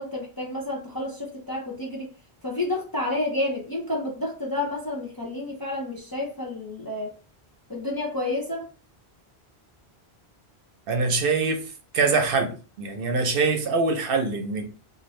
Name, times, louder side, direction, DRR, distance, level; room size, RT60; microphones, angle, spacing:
voice 1, 0.0-2.1 2.4-7.1 7.7-8.6, left 2 dB, 25° left, 0.5 m, -30 dB
voice 2, 10.9-11.7 11.9-14.8, right 4 dB, 65° right, 0.8 m, -24 dB
2.6 x 2.6 x 3.1 m
omnidirectional pair, 1.1 m